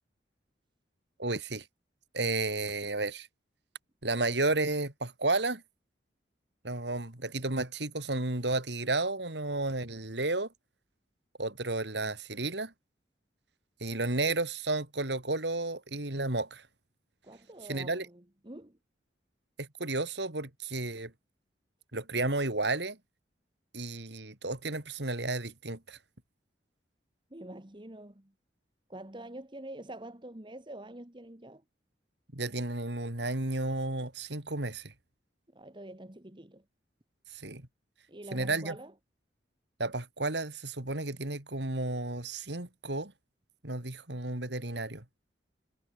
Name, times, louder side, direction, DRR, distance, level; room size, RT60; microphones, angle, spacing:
voice 1, 1.2-1.7 2.1-3.3 4.0-5.6 6.6-10.5 11.4-12.7 13.8-16.7 17.7-18.1 19.6-21.1 21.9-23.0 23.7-26.0 32.3-34.9 37.3-37.7 38.3-38.8 39.8-43.1 43.6-45.1, right 2 dB, 70° right, 3.4 m, -32 dB
voice 2, 17.2-18.8 27.3-28.3 28.9-31.6 35.5-36.6 38.1-38.9, right 1 dB, 25° right, 1.6 m, -46 dB
head